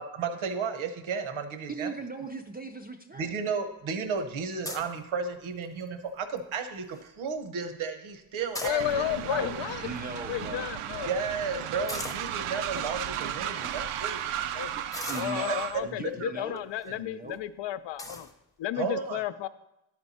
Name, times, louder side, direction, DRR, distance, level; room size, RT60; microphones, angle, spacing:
voice 1, 0.0-1.9 3.2-9.6 11.1-14.8 15.5-15.6 16.2-16.3 16.9-17.0 18.8-19.2, right 5 dB, 70° right, 8 dB, 0.9 m, -33 dB
voice 2, 1.7-3.3 9.8-11.2 14.7-16.6 16.9-17.4, right 3 dB, 20° right, 4 dB, 0.4 m, -39 dB
sound 1, 4.6-5.0 5.6-5.9 6.4-6.5 6.7-7.0 8.3-9.2 10.0-10.1 10.3-10.4 11.9-12.3 13.0-13.1 13.6-13.8 14.9-15.8 16.6-16.9 17.3-17.4 18.0-18.3, left 1 dB, 5° left, 0.7 m, -38 dB
voice 3, 8.6-9.9 10.3-11.1 14.6-14.7 15.1-18.3 18.6-19.5, left 12 dB, 60° left, 14 dB, 0.5 m, -32 dB
Train, 8.8-15.8, right 10 dB, 85° right, 0.6 m, -35 dB
11.5 x 4.4 x 4.1 m, 0.91 s
cardioid pair, 100°, 50 cm